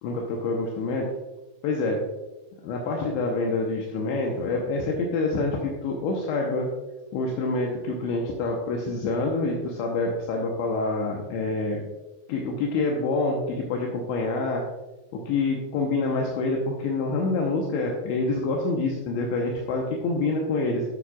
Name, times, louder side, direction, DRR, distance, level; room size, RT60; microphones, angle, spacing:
voice 1, 0.0-1.1 1.6-2.0 2.6-6.7 7.1-11.8 12.3-14.6 15.1-20.8, left 3 dB, 80° left, -1 dB, 3.0 m, -26 dB
12.0 x 7.6 x 2.3 m, 1.1 s
omnidirectional pair, 5.4 m